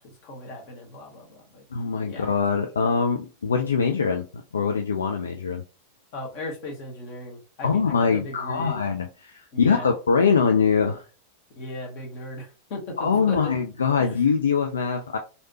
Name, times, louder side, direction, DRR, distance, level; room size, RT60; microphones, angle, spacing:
voice 1, 0.0-1.6 2.1-2.3 6.1-8.8 9.5-9.9 11.5-13.5 14.0-14.2, left 1 dB, 45° left, 1.4 m, -37 dB
voice 2, 1.7-4.2 4.5-5.6 7.6-11.0 13.0-15.2, left 5 dB, 70° left, 0.4 m, -23 dB
3.2 x 2.7 x 2.8 m
figure-of-eight pair, 90°, 0 cm